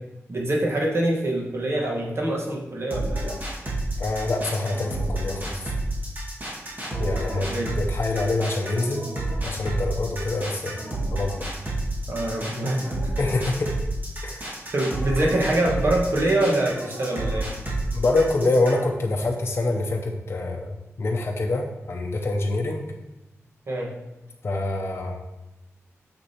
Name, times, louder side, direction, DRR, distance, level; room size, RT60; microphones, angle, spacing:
voice 1, 0.3-3.3 7.2-7.7 12.1-12.9 14.7-17.5 23.7-23.9, right 1 dB, 55° right, -2 dB, 1.4 m, -25 dB
sound 1, 2.9-18.9, right 2 dB, 35° right, 1.8 m, -30 dB
voice 2, 4.0-5.7 7.0-9.1 9.4-10.8 11.1-11.4 13.2-13.7 14.2-14.5 17.9-22.9 24.4-25.2, left 2 dB, 50° left, 0 dB, 0.6 m, -26 dB
6.6 x 6.1 x 2.9 m, 0.98 s
wide cardioid pair, 95°, 5 cm